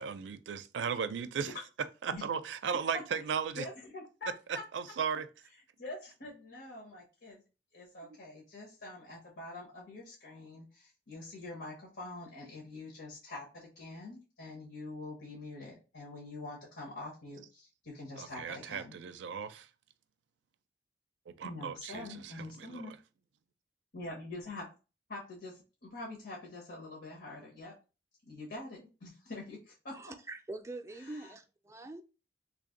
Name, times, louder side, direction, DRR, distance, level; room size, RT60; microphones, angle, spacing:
voice 1, 0.0-1.6 2.0-3.6 4.5-5.3 8.0-8.2 18.2-19.7 21.3-22.8, right 6 dB, 90° right, 0.4 m, -36 dB
voice 2, 3.6-4.6 5.8-7.4 7.7-18.9 21.4-22.9 23.9-24.7 25.1-27.7 28.2-30.0 31.0-31.3, left 2 dB, 90° left, 1.3 m, -45 dB
voice 3, 29.9-32.0, right 2 dB, 15° right, 0.3 m, -44 dB
3.4 x 2.5 x 3.7 m
head